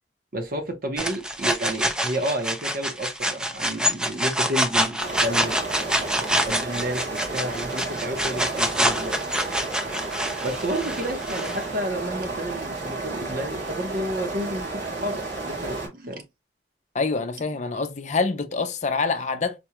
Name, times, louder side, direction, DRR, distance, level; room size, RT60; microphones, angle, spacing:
voice 1, 0.3-6.0 6.4-9.2 10.4-16.2, right 1 dB, 50° right, 0.9 m, -31 dB
sound 1, 1.0-11.6, equal, 5° right, 0.4 m, -26 dB
sound 2, 5.0-15.9, right 3 dB, 80° right, 2.2 m, -32 dB
voice 2, 16.9-19.6, left 4 dB, 40° left, 0.5 m, -26 dB
4.2 x 2.3 x 2.9 m
head